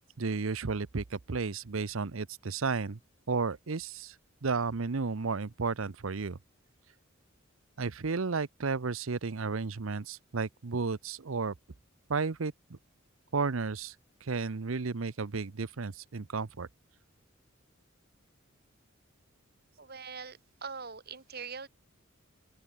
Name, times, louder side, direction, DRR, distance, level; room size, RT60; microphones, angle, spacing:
voice 1, 0.2-3.0 3.3-4.2 4.4-6.4 7.8-11.5 12.1-12.8 13.3-13.9 14.2-16.7, right 4 dB, 80° right, 0.8 m, -33 dB
voice 2, 19.8-21.7, right 5 dB, 50° right, 3.7 m, -42 dB
open air
head